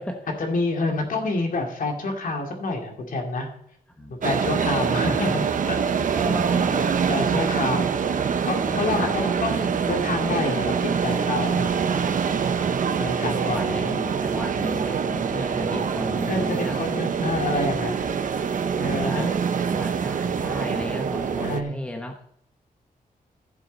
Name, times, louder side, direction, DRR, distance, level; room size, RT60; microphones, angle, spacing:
voice 1, 0.4-3.5 4.1-5.8 6.5-6.6 7.1-7.9 8.4-11.8 12.7-13.8 16.3-18.0 18.8-19.4 21.4-21.7, left 2 dB, 65° left, 3 dB, 2.4 m, -28 dB
sound 1, 4.2-21.6, right 6 dB, 60° right, 0.9 m, -25 dB
voice 2, 6.1-7.1 7.5-7.6 8.7-9.3 11.5-13.0 13.4-16.8 18.8-19.3 19.7-22.1, left 1 dB, 5° left, 3 dB, 1.0 m, -35 dB
15.0 x 7.2 x 4.0 m, 0.71 s
wide cardioid pair, 150°, 15 cm